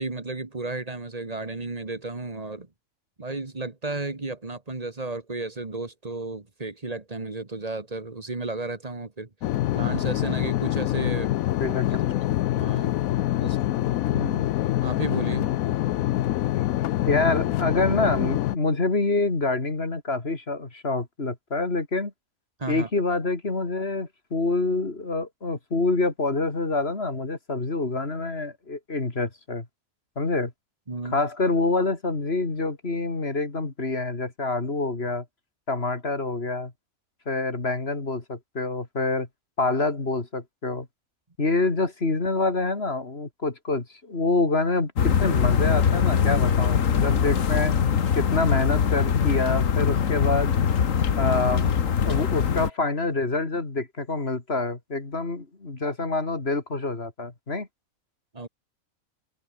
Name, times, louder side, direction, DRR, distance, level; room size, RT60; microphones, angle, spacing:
voice 1, 0.0-2.7 3.2-9.3 9.7-11.3 11.9-12.0 12.6-13.0 13.4-13.8 14.8-15.5 22.6-22.9 30.9-31.2 58.3-58.5, right 3 dB, 30° right, 1.7 m, -33 dB
sound 1, 9.4-18.6, left 14 dB, 85° left, 1.1 m, -25 dB
voice 2, 11.6-12.1 14.1-14.5 17.1-22.1 22.7-29.7 30.2-30.5 31.0-35.2 35.7-36.7 37.3-39.3 39.6-40.9 41.4-47.7 48.1-50.5 51.2-51.7 52.0-57.7, left 3 dB, 45° left, 3.1 m, -26 dB
sound 2, 45.0-52.7, left 7 dB, 70° left, 1.7 m, -22 dB
omnidirectional pair, 1.4 m